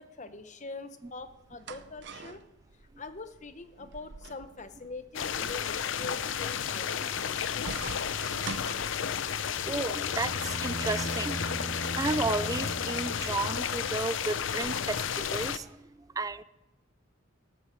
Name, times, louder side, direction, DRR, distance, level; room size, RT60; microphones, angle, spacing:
voice 1, 0.0-2.4 3.0-7.8, left 3 dB, 35° left, 11 dB, 0.9 m, -43 dB
sound 1, 1.0-9.5, right 4 dB, 60° right, 0.6 m, -46 dB
sound 2, 5.1-15.6, left 8 dB, 70° left, 0.6 m, -32 dB
Bowed string instrument, 9.2-14.0, right 2 dB, 40° right, 2.6 m, -40 dB
voice 2, 9.6-16.4, right 3 dB, 20° right, 16 dB, 0.4 m, -33 dB
18.0 x 7.2 x 7.1 m, 1.0 s
head